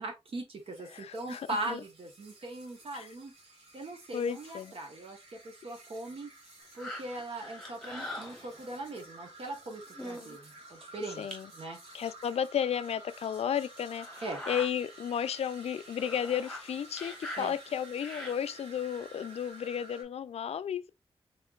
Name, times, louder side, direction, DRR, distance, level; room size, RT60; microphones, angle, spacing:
voice 1, 0.0-3.3 3.7-6.3 6.7-11.3 11.5-11.8 14.2-14.4 17.4-17.5, right 2 dB, 60° right, 1.2 m, -40 dB
sound 1, 0.6-20.0, right 2 dB, 85° right, 2.2 m, -52 dB
voice 2, 0.9-1.8 2.9-3.1 4.1-4.7 11.2-11.5 11.9-14.1 14.5-20.9, left 8 dB, 80° left, 0.4 m, -33 dB
sound 2, 6.8-8.9 9.5-9.6 9.9-10.4 10.8-10.9 11.3-11.4 12.4-12.5 13.0-13.1 13.9-14.7 15.2-15.3 15.6-18.7 19.3-19.4, left 1 dB, 5° left, 1.1 m, -42 dB
4.3 x 3.6 x 2.4 m
wide cardioid pair, 170°, 11 cm